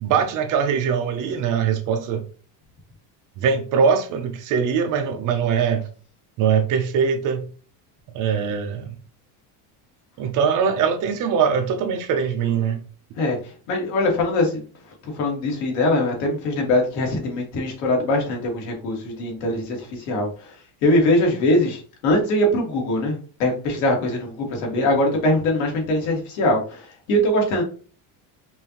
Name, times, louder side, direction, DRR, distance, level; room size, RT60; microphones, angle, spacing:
voice 1, 0.0-2.2 3.4-5.8 6.4-7.5 8.1-8.9 10.2-12.8, right 6 dB, 40° right, 0.6 m, -22 dB
voice 2, 13.7-14.7 15.0-20.5 20.8-27.6, left 1 dB, 75° left, 1.9 m, -22 dB
5.4 x 2.6 x 2.9 m
cardioid pair, 170°, 48 cm